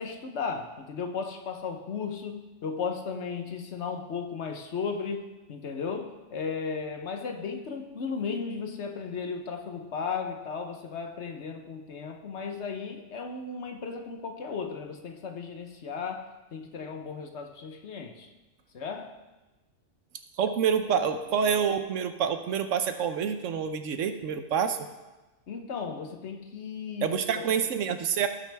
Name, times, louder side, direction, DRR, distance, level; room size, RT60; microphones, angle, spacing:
voice 1, 0.0-18.3 18.7-19.2 25.5-27.5, left 5 dB, 65° left, 5 dB, 1.2 m, -35 dB
voice 2, 20.4-24.8 27.0-28.3, right 7 dB, 85° right, 9 dB, 1.1 m, -27 dB
17.0 x 6.1 x 3.4 m, 1.1 s
omnidirectional pair, 1.3 m